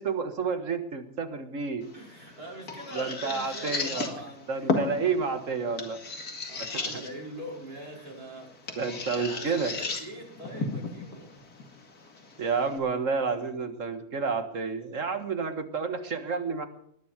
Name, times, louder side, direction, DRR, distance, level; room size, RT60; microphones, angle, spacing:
voice 1, 0.0-1.8 3.0-4.1 4.5-6.0 8.8-9.7 12.4-16.7, right 5 dB, 60° right, 7 dB, 1.9 m, -30 dB
sound 1, 1.8-12.8, left 3 dB, 85° left, 2.7 m, -36 dB
voice 2, 1.9-5.3 6.5-8.5 8.9-11.3, right 1 dB, 80° right, -3 dB, 5.9 m, -43 dB
20.0 x 10.5 x 5.1 m, 0.68 s
omnidirectional pair, 1.6 m